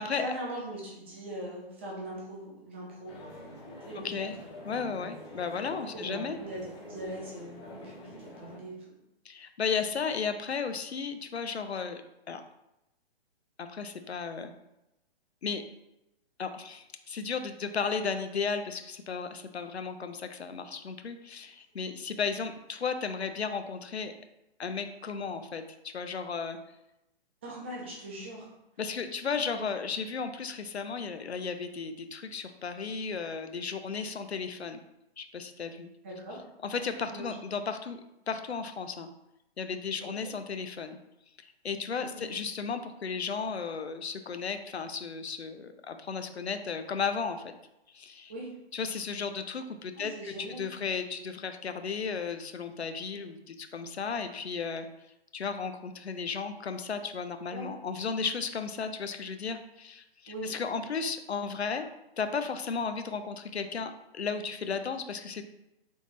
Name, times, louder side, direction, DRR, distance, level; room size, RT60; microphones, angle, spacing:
voice 1, 0.1-3.1 3.9-4.3 5.9-8.7 27.4-28.5 29.5-29.6 36.0-36.4 37.1-37.4 40.0-40.3 42.0-42.2 48.3-48.5 50.0-50.6 57.5-57.7 60.3-60.5, right 1 dB, 10° right, -4 dB, 0.3 m, -40 dB
sound 1, 3.1-8.6, left 1 dB, 25° left, 0.6 m, -46 dB
voice 2, 4.0-4.3 4.6-6.4 9.3-12.0 12.3-12.4 13.6-14.5 15.4-15.6 16.4-24.1 24.6-26.6 28.8-34.8 35.2-35.9 36.6-38.0 38.3-39.1 39.6-41.0 41.4-47.5 47.9-48.3 48.7-54.9 55.3-61.8 62.2-65.4, left 5 dB, 85° left, 8 dB, 0.5 m, -34 dB
3.5 x 3.2 x 2.6 m, 0.89 s
figure-of-eight pair, 125°, 32 cm